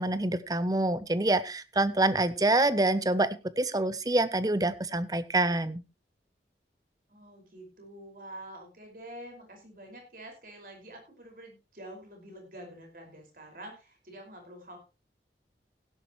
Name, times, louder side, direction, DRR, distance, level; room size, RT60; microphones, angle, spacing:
voice 1, 0.0-3.3 3.6-5.8, right 2 dB, 20° right, 15 dB, 0.7 m, -26 dB
voice 2, 7.1-14.8, right 1 dB, 50° right, 2 dB, 5.3 m, -47 dB
16.0 x 11.0 x 3.1 m, 0.29 s
head